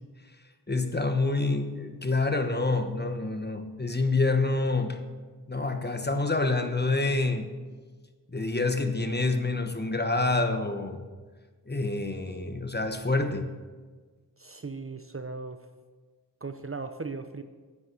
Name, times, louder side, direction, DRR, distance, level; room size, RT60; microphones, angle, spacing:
voice 1, 0.7-5.0 5.5-7.5 8.3-11.1 11.7-13.5, left 3 dB, 25° left, 7 dB, 1.0 m, -27 dB
voice 2, 14.4-15.7 16.4-17.4, right 4 dB, 30° right, 8 dB, 0.7 m, -37 dB
9.7 x 9.3 x 6.4 m, 1.4 s
wide cardioid pair, 65°, 42 cm